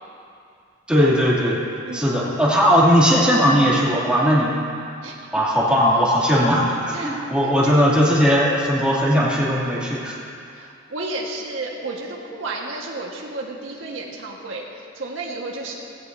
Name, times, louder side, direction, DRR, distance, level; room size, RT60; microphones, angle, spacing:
voice 1, 0.9-1.6 1.9-4.6 5.3-10.2, equal, 5° right, -7 dB, 2.7 m, -18 dB
voice 2, 1.8-2.2 2.6-2.7 5.0-5.2 6.9-7.2 7.6-7.8 10.5-15.8, right 2 dB, 80° right, -2 dB, 1.6 m, -32 dB
17.0 x 16.0 x 2.7 m, 2.5 s
head